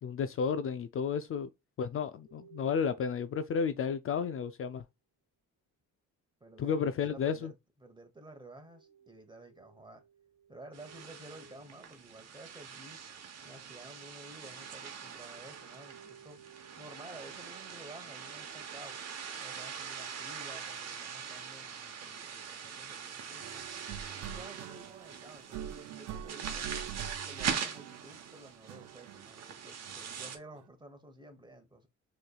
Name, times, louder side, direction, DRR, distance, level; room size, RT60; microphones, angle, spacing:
voice 1, 0.0-1.5 1.8-4.8 6.6-7.5, left 6 dB, 45° left, 0.4 m, -32 dB
sound 1, 2.2-4.1 8.5-12.9 14.3-20.5, right 7 dB, 30° left, 1.9 m, -61 dB
voice 2, 6.4-10.0 10.5-13.0 13.4-16.4 16.8-19.0 19.4-23.7 24.1-26.7 27.3-31.9, right 1 dB, 15° right, 1.1 m, -52 dB
sound 2, 10.7-30.4, right 7 dB, 60° right, 1.0 m, -42 dB
sound 3, 23.4-30.6, right 9 dB, 75° right, 0.5 m, -45 dB
6.3 x 3.1 x 2.3 m
cardioid pair, 90°, 30 cm